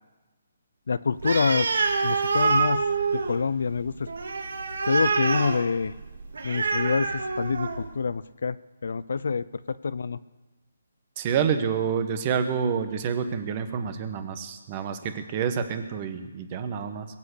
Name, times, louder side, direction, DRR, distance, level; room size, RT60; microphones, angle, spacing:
voice 1, 0.9-1.7 2.0-2.8 3.1-4.1 4.9-5.9 6.4-8.6 8.8-10.2, left 5 dB, 65° left, 17 dB, 0.5 m, -26 dB
Animal, 1.2-7.9, right 4 dB, 75° right, 1.9 m, -27 dB
voice 2, 11.2-17.1, right 7 dB, 25° right, 9 dB, 1.1 m, -28 dB
22.0 x 8.3 x 6.7 m, 1.2 s
hypercardioid pair, 170°, 0 cm